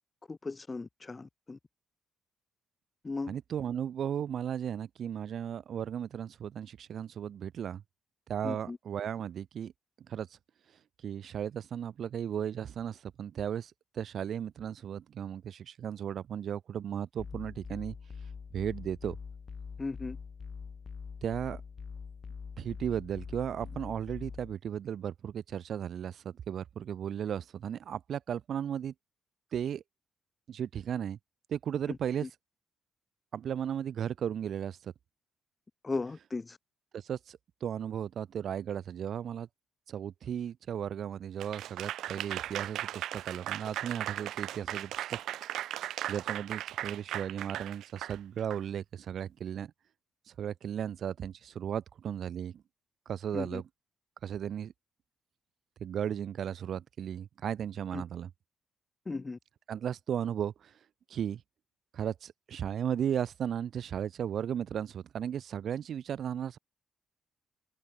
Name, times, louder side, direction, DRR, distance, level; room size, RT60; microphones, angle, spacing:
voice 1, 0.3-1.6 3.0-3.3 8.4-8.8 19.8-20.2 31.9-32.3 35.8-36.6 53.3-53.6 57.9-58.0 59.1-59.4, left 3 dB, 25° left, 3.9 m, -37 dB
voice 2, 3.3-7.8 8.3-9.7 10.1-10.4 11.0-17.9 18.5-19.2 21.2-21.6 22.6-28.9 29.5-29.8 30.5-31.2 31.5-32.3 33.3-34.9 36.9-39.5 39.9-45.2 46.1-49.7 50.3-52.6 53.0-53.6 54.2-54.7 55.8-58.3 59.7-60.8 61.1-61.4 61.9-66.6, right 9 dB, 60° right, 3.3 m, -35 dB
sound 1, 17.2-24.5, left 5 dB, 40° left, 2.5 m, -44 dB
Applause / Crowd, 41.4-48.6, right 13 dB, 80° right, 2.7 m, -37 dB
open air
cardioid pair, 90°, 0 cm